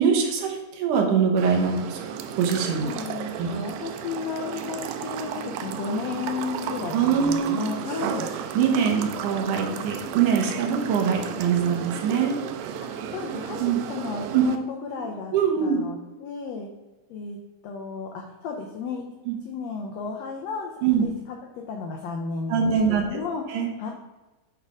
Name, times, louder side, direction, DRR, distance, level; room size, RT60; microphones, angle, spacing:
voice 1, 0.0-2.0 2.4-2.9 3.4-3.5 6.9-7.6 8.2-8.3 8.6-12.3 13.6-13.8 14.3-14.4 15.3-15.8 19.3-19.4 20.8-21.0 22.5-23.0 23.5-23.7, right 7 dB, 70° right, 2 dB, 2.4 m, -23 dB
sound 1, 1.4-14.6, right 8 dB, 85° right, 2.3 m, -34 dB
voice 2, 2.8-8.3 12.9-13.6 13.9-15.3 15.6-16.7 17.1-17.4 17.6-19.0 19.4-20.7 21.0-23.4 23.8-23.9, left 5 dB, 85° left, 1 dB, 1.5 m, -33 dB
8.0 x 3.5 x 4.8 m, 1.1 s
omnidirectional pair, 3.9 m